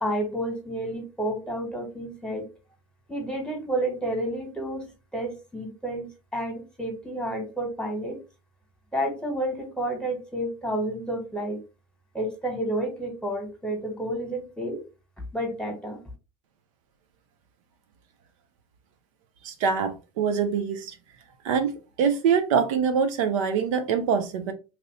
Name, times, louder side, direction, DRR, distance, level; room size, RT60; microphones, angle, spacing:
voice 1, 0.0-2.4 3.1-4.9 5.1-6.1 6.3-8.2 8.9-11.6 12.1-14.8 15.3-16.0, right 1 dB, 5° left, 1.3 m, -30 dB
voice 2, 19.4-21.0 21.4-24.5, right 6 dB, 70° right, 0.5 m, -24 dB
2.9 x 2.5 x 3.1 m
hypercardioid pair, 80°, 17 cm